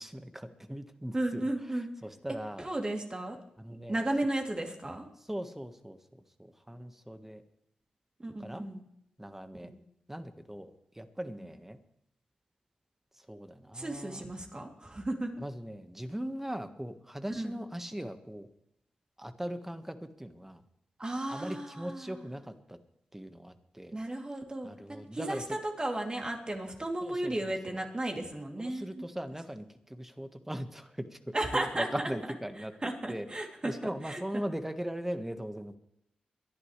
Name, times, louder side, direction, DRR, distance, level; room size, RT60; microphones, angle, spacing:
voice 1, 0.0-1.4 1.7-2.7 3.6-4.0 5.2-7.4 8.4-8.7 9.2-9.7 10.1-11.8 13.1-14.3 15.4-18.5 19.2-20.6 21.3-22.8 23.1-24.0 24.6-25.4 27.0-27.8 28.6-32.7 33.1-35.8, equal, 10° right, 8 dB, 1.6 m, -40 dB
voice 2, 1.1-1.9 2.6-3.4 3.9-5.1 8.2-8.8 9.6-9.8 13.7-15.3 17.4-17.6 21.0-22.2 23.9-29.0 31.3-32.1 32.8-33.7 34.0-34.2, right 1 dB, 30° right, 2 dB, 3.1 m, -34 dB
23.0 x 11.0 x 3.4 m, 0.78 s
supercardioid pair, 40°, 3 cm